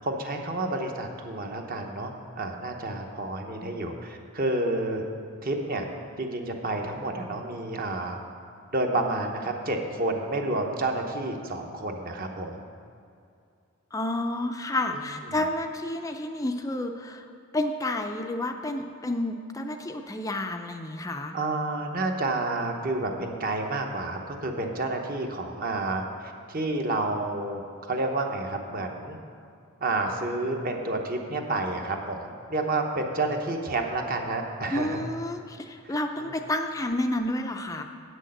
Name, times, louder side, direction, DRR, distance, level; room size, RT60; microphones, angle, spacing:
voice 1, 0.0-5.0 5.4-5.8 6.2-8.2 8.7-12.7 14.9-15.1 21.3-29.2 29.8-35.0 35.8-36.3, right 2 dB, 40° right, 3 dB, 0.9 m, -30 dB
voice 2, 13.9-17.2 17.5-21.3 34.7-37.8, left 1 dB, 15° left, 5 dB, 0.4 m, -30 dB
8.4 x 6.4 x 7.7 m, 2.4 s
head